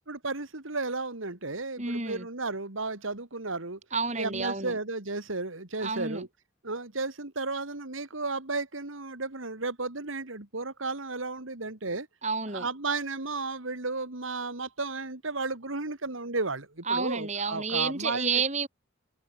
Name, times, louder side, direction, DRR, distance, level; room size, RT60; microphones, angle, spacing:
voice 1, 0.0-3.8 4.2-6.3 6.6-12.1 12.5-18.4, right 3 dB, 85° right, 2.7 m, -33 dB
voice 2, 1.8-2.3 3.9-4.8 5.8-6.3 12.2-12.7 16.9-18.7, right 4 dB, 35° right, 4.2 m, -30 dB
head